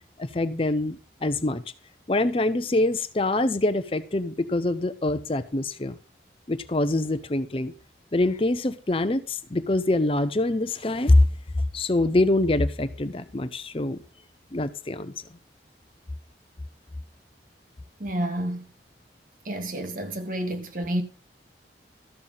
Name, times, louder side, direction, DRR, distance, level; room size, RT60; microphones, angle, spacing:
voice 1, 0.2-1.6 2.1-6.0 6.5-7.7 8.1-11.3 11.7-14.0 14.5-15.1, left 2 dB, 30° left, 0.6 m, -24 dB
voice 2, 18.0-18.6 19.4-21.0, right 1 dB, 50° right, 1.7 m, -29 dB
13.5 x 6.9 x 5.5 m
head